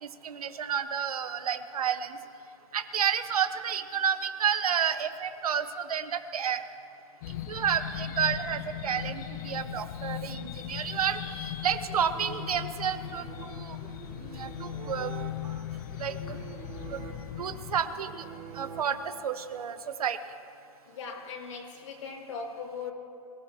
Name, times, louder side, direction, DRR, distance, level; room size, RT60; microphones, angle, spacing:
voice 1, 0.0-2.2 2.7-6.6 7.5-13.8 14.2-15.1 15.4-15.6 16.0-16.4 16.9-17.1 17.4-18.2 18.5-20.2, right 8 dB, 75° right, 10 dB, 1.1 m, -31 dB
sound 1, 7.2-17.8, left 11 dB, 30° left, 0.5 m, -38 dB
sound 2, 11.9-19.4, right 7 dB, 30° right, 3.9 m, -46 dB
voice 2, 20.9-22.9, left 5 dB, 55° left, 1 dB, 2.5 m, -39 dB
25.5 x 15.5 x 2.9 m, 2.7 s
hypercardioid pair, 155°, 19 cm